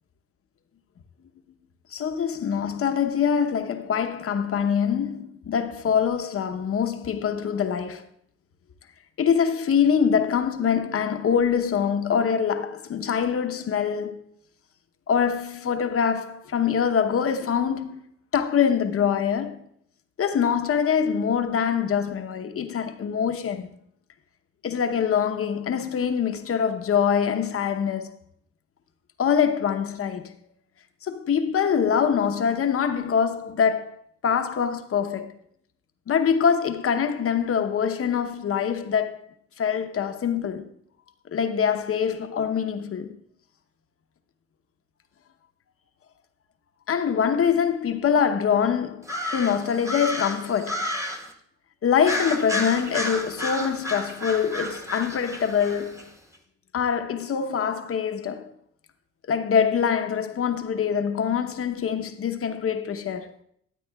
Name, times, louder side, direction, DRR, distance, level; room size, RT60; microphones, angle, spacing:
voice 1, 1.9-8.1 9.2-14.2 15.1-18.0 18.3-19.6 20.2-23.7 24.6-28.1 29.2-30.3 31.0-33.9 34.2-35.3 36.1-39.2 39.6-40.7 41.3-43.1 46.9-49.1 49.3-50.9 51.8-56.1 56.7-58.5 59.3-63.3, left 7 dB, 50° left, 0.9 m, -24 dB
sound 1, 49.0-51.3 52.0-56.0, left 1 dB, 10° right, 1.2 m, -31 dB
13.0 x 8.4 x 2.3 m
cardioid pair, 90°, 30 cm